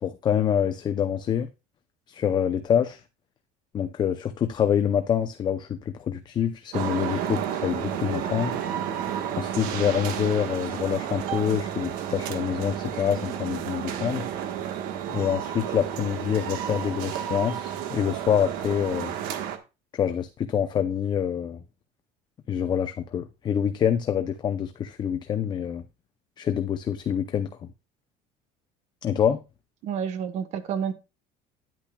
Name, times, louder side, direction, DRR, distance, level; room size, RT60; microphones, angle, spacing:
voice 1, 0.0-1.5 2.1-3.0 3.7-8.5 9.4-14.2 15.1-19.1 19.9-21.6 22.5-25.8 26.4-27.5 29.0-29.4, left 9 dB, 30° left, 0.6 m, -26 dB
sound 1, 6.7-19.6, right 9 dB, 70° right, 1.4 m, -31 dB
voice 2, 29.8-30.9, right 7 dB, 50° right, 1.2 m, -29 dB
10.0 x 8.9 x 2.3 m
cardioid pair, 155°, 15 cm